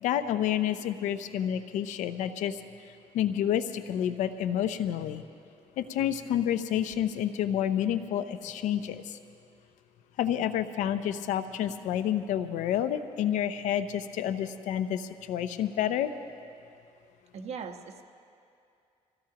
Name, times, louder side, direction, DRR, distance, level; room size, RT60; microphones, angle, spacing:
voice 1, 0.0-2.6 3.1-5.2 5.8-9.2 10.2-16.1, left 10 dB, 90° left, 11 dB, 0.6 m, -29 dB
voice 2, 17.3-18.0, right 6 dB, 60° right, 4 dB, 1.2 m, -39 dB
25.0 x 16.5 x 2.9 m, 2.5 s
cardioid pair, 90°, 12 cm